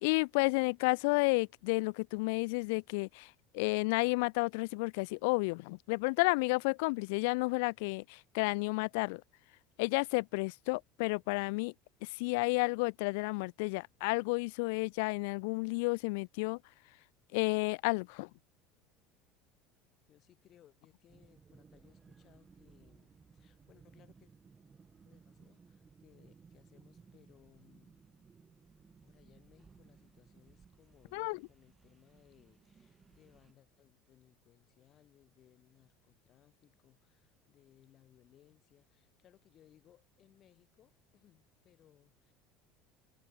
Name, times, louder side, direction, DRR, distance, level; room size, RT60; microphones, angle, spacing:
voice 1, 0.0-9.2 9.8-11.7 12.0-16.6 17.3-18.3 31.1-31.4, left 29 dB, 80° left, 0.4 m, -31 dB
voice 2, 20.1-24.3 25.0-28.0 29.0-42.3, left 11 dB, 35° left, 7.8 m, -65 dB
sound 1, 21.1-33.5, right 5 dB, 20° right, 1.7 m, -61 dB
cardioid pair, 160°, 0 cm